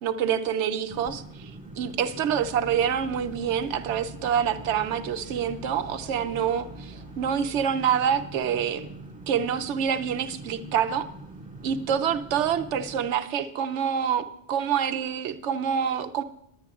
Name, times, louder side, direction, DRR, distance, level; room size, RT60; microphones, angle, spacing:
voice 1, 0.0-1.5 1.8-8.9 9.3-11.1 11.6-16.2, right 8 dB, 80° right, 11 dB, 1.0 m, -26 dB
sound 1, 0.9-13.1, right 2 dB, 30° right, 1.9 m, -43 dB
sound 2, 2.3-7.6, equal, 40° left, 3.6 m, -48 dB
18.0 x 10.0 x 2.4 m, 0.75 s
omnidirectional pair, 1.2 m